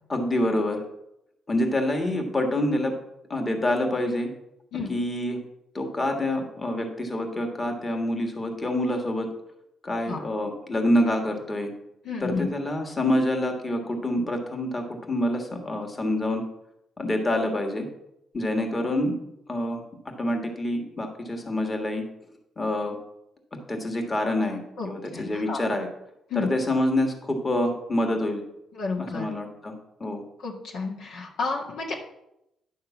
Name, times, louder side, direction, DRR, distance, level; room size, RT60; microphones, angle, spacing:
voice 1, 0.1-0.8 1.5-2.9 3.3-4.3 4.9-5.4 5.7-9.3 9.8-11.7 12.2-16.4 17.0-17.9 18.3-19.1 19.5-19.8 20.2-22.0 22.6-23.0 23.7-25.9 26.3-28.4 29.0-29.7 30.0-30.2, left 1 dB, 25° left, 3 dB, 1.7 m, -26 dB
voice 2, 12.0-12.5 24.8-25.6 26.3-26.5 28.7-29.3 30.4-32.0, left 4 dB, 80° left, -1 dB, 1.6 m, -31 dB
10.0 x 3.7 x 7.1 m, 0.83 s
cardioid pair, 90°, 0 cm